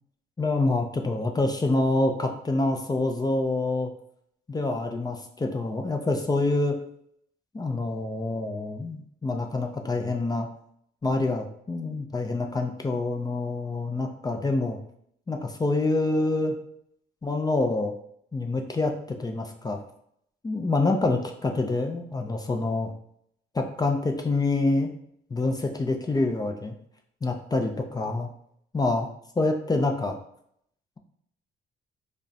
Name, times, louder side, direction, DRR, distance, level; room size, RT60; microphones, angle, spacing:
voice 1, 0.4-3.9 4.5-6.8 7.5-10.5 11.0-14.8 15.3-16.6 17.2-18.0 18.3-19.8 20.4-22.9 23.5-24.9 25.3-26.7 27.2-28.3 28.7-29.1 29.4-30.2, left 2 dB, 20° left, 3 dB, 0.4 m, -26 dB
5.0 x 2.2 x 2.7 m, 0.69 s
cardioid pair, 90°, 20 cm